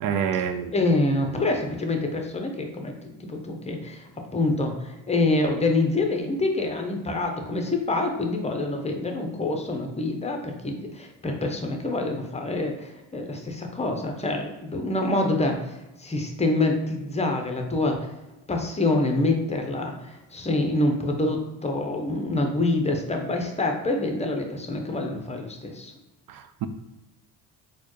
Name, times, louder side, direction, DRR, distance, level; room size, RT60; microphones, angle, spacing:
voice 1, 0.0-0.7 26.3-26.7, right 8 dB, 60° right, 10 dB, 0.5 m, -27 dB
voice 2, 0.7-18.1 18.5-25.9, left 2 dB, 15° left, 3 dB, 0.7 m, -26 dB
4.2 x 2.3 x 3.1 m, 1.0 s
supercardioid pair, 80°, 40 cm